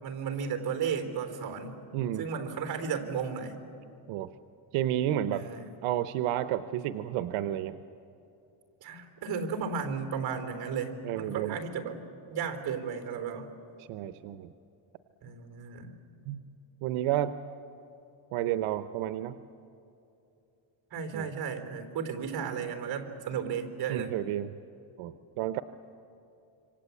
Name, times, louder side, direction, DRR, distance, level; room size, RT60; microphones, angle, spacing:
voice 1, 0.0-1.8 2.2-3.6 5.3-5.7 8.8-12.0 12.3-13.5 15.2-15.9 20.9-24.1, right 6 dB, 50° right, 7 dB, 3.6 m, -34 dB
voice 2, 1.9-2.3 4.1-4.3 4.7-5.5 5.8-7.8 11.0-11.6 13.8-14.5 16.3-16.4 16.8-17.3 18.3-19.4 21.1-21.3 23.9-24.5 25.0-25.6, right 12 dB, 85° right, 11 dB, 0.9 m, -31 dB
27.0 x 25.0 x 8.4 m, 2.8 s
cardioid pair, 145°, 48 cm